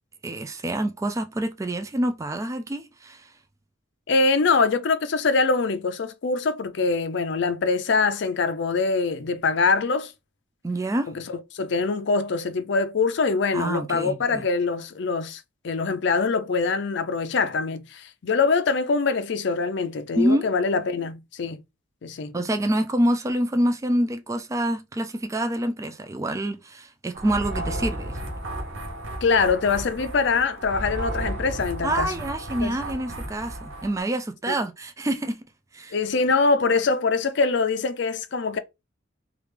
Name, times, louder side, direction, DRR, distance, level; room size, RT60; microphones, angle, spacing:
voice 1, 0.2-3.3 10.6-11.1 13.5-14.4 20.2-20.5 22.3-28.2 31.8-35.4 35.7-36.0, right 1 dB, 15° right, 0.3 m, -26 dB
voice 2, 4.1-10.1 11.1-21.6 22.0-22.3 29.2-32.1 32.6-32.8 35.9-38.6, left 4 dB, 60° left, 0.4 m, -24 dB
sound 1, 27.1-34.0, right 1 dB, 70° right, 0.7 m, -33 dB
3.2 x 2.4 x 3.2 m
head